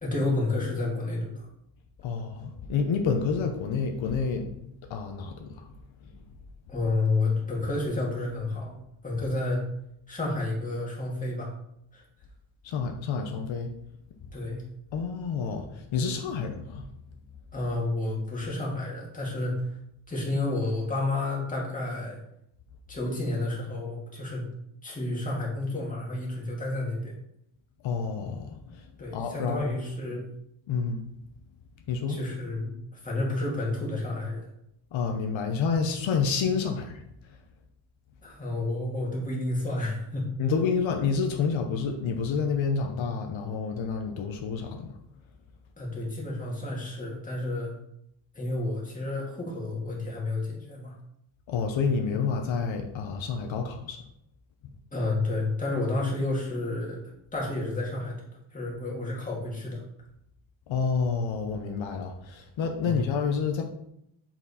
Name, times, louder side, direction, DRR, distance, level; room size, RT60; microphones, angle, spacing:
voice 1, 0.0-1.5 6.7-8.8 9.0-9.7 10.1-11.5 11.9-12.0 14.3-14.6 17.5-19.7 20.1-22.2 22.9-24.5 24.8-27.1 29.0-30.2 32.1-34.5 38.2-40.3 45.8-47.7 48.3-51.0 54.9-57.0 57.3-58.2 58.5-59.8 62.8-63.0, left 2 dB, 15° left, -4 dB, 2.1 m, -30 dB
voice 2, 2.0-4.5 4.9-5.6 6.0-6.1 12.6-13.7 14.9-16.9 27.8-29.7 30.7-31.1 31.9-32.2 34.9-37.0 40.4-44.9 51.5-54.0 60.7-63.6, left 5 dB, 80° left, 3 dB, 1.0 m, -29 dB
7.8 x 4.5 x 4.2 m, 0.76 s
wide cardioid pair, 155°, 46 cm